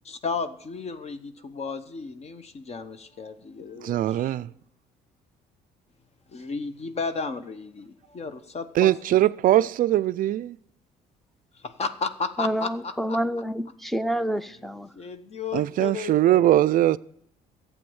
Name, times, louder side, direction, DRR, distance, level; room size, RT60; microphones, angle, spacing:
voice 1, 0.0-4.3 6.3-9.3 9.6-9.7 11.5-13.2 14.9-16.7, left 4 dB, 40° left, 0.9 m, -34 dB
voice 2, 3.8-4.5 8.7-10.6 15.5-17.0, right 13 dB, 55° right, 0.4 m, -21 dB
voice 3, 12.4-14.9, equal, ahead, 0.6 m, -28 dB
12.0 x 8.5 x 7.1 m
cardioid pair, 110°, 17 cm